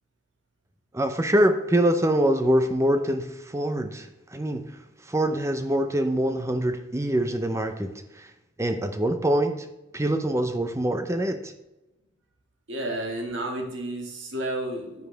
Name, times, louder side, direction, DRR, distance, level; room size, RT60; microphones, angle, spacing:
voice 1, 0.9-4.1 4.3-4.6 5.1-8.3 8.6-9.5 9.9-11.5, right 1 dB, 15° right, 8 dB, 0.6 m, -24 dB
voice 2, 12.7-15.1, right 1 dB, 60° right, 2 dB, 1.9 m, -31 dB
9.4 x 9.4 x 3.4 m, 0.97 s
head